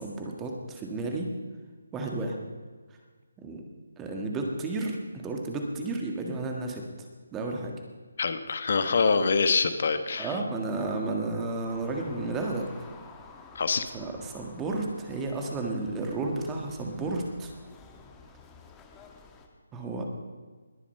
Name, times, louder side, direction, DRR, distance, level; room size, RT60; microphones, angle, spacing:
voice 1, 0.0-1.3 1.9-2.4 3.4-3.6 4.0-6.8 7.3-7.7 10.2-12.9 13.9-17.5 19.7-20.1, right 2 dB, 10° right, 1 dB, 1.5 m, -32 dB
voice 2, 8.2-10.4 13.5-13.8, left 4 dB, 50° left, 10 dB, 1.1 m, -25 dB
sound 1, 11.7-19.5, left 5 dB, 10° left, 1.2 m, -51 dB
20.5 x 7.2 x 5.5 m, 1.5 s
figure-of-eight pair, 160°, 0 cm